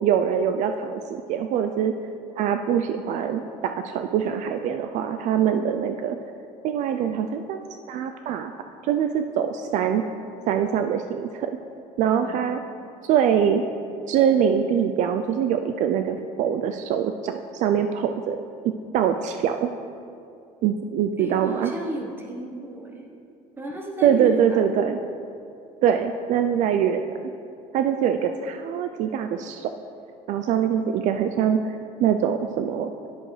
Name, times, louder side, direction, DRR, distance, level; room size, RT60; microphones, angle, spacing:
voice 1, 0.0-1.9 2.4-6.2 6.6-7.6 7.9-8.5 8.8-10.0 10.5-11.5 12.0-12.6 13.0-13.6 14.1-18.4 18.9-19.7 20.6-21.7 24.0-25.0 25.8-27.1 27.7-29.7 30.3-31.6 32.0-32.9, right 8 dB, 60° right, 7 dB, 0.4 m, -23 dB
voice 2, 12.0-12.4 21.2-23.1 23.6-24.9, right 1 dB, 15° right, 0 dB, 1.0 m, -34 dB
10.0 x 7.7 x 3.2 m, 2.5 s
cardioid pair, 135°, 14 cm